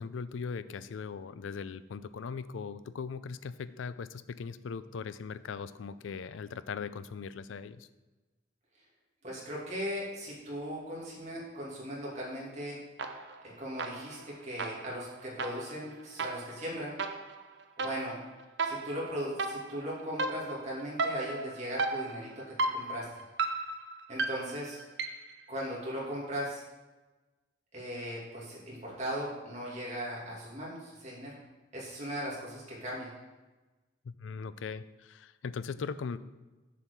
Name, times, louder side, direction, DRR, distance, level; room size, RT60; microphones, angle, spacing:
voice 1, 0.0-7.9 34.0-36.2, left 5 dB, 85° left, 14 dB, 0.4 m, -39 dB
voice 2, 9.2-12.8 13.6-17.0 17.8-18.2 18.6-22.4 22.7-23.1 24.1-24.8 25.5-26.6 27.7-31.4 31.7-33.1, equal, 35° right, -5 dB, 2.6 m, -38 dB
sound 1, 13.0-13.5 13.8-25.4, right 3 dB, 65° right, 0.6 m, -36 dB
7.0 x 4.6 x 6.6 m, 1.2 s
head